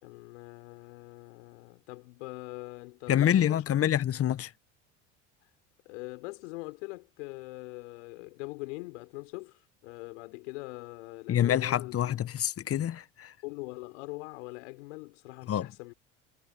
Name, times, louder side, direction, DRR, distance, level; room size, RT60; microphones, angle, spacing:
voice 1, 0.0-3.6 5.9-11.9 13.4-15.9, left 24 dB, 75° left, 5.4 m, -42 dB
voice 2, 3.1-4.5 11.3-13.3 15.5-15.7, left 10 dB, 40° left, 1.4 m, -26 dB
hypercardioid pair, 75°, 37 cm